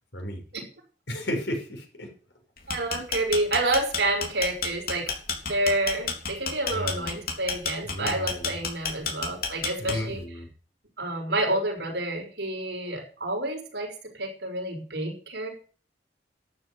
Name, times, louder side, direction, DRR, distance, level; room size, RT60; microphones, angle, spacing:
voice 1, 0.1-0.4 1.1-2.1 6.7-7.1 7.8-8.5 9.8-10.5, equal, 85° left, 2 dB, 6.1 m, -33 dB
sound 1, 2.6-10.2, left 5 dB, 55° left, 3.6 m, -30 dB
voice 2, 2.7-5.1 5.4-10.2 11.0-15.5, right 2 dB, 70° right, 2 dB, 5.9 m, -29 dB
13.0 x 9.8 x 8.0 m, 0.41 s
head